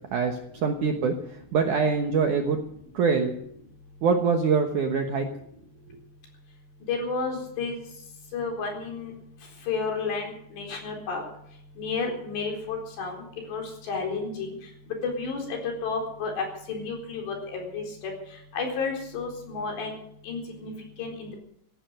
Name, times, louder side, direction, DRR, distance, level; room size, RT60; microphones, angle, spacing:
voice 1, 0.1-2.6 2.9-3.3 4.0-5.3, right 5 dB, 65° right, 4 dB, 2.0 m, -24 dB
voice 2, 6.9-7.8 8.3-9.1 9.7-11.2 11.8-13.2 13.5-14.5 15.0-17.8 18.5-20.0 20.2-20.7 21.0-21.4, left 4 dB, 70° left, 1 dB, 6.2 m, -31 dB
16.5 x 12.5 x 6.5 m, 0.71 s
omnidirectional pair, 5.1 m